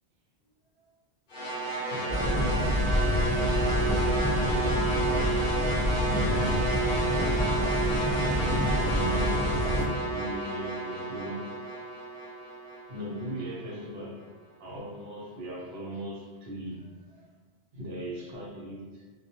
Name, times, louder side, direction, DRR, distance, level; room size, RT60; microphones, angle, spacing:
sound 1, 1.3-13.6, right 2 dB, 55° left, 0.7 m, -31 dB
voice 1, 1.9-4.9 6.1-6.7 8.1-11.5 12.9-14.2 14.6-17.2 17.7-19.0, right 1 dB, 70° right, -4 dB, 0.9 m, -39 dB
sound 2, 2.1-9.8, left 1 dB, 5° right, 1.2 m, -27 dB
2.2 x 2.2 x 2.7 m, 1.4 s
omnidirectional pair, 1.1 m